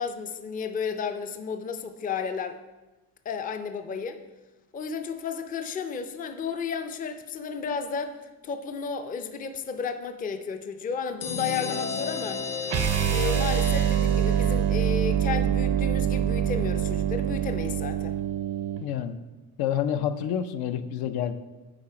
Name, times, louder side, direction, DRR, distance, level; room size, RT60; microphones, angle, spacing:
voice 1, 0.0-2.6 3.3-4.2 4.7-8.2 8.4-12.4 13.1-18.2, left 6 dB, 25° left, 8 dB, 0.4 m, -33 dB
sound 1, 11.2-14.8, left 5 dB, 40° left, 0.8 m, -34 dB
sound 2, 12.7-18.8, right 9 dB, 45° right, 0.5 m, -25 dB
voice 2, 18.8-19.2 19.6-21.3, left 9 dB, 75° left, 10 dB, 0.7 m, -28 dB
10.0 x 4.0 x 4.9 m, 1.2 s
cardioid pair, 130°, 37 cm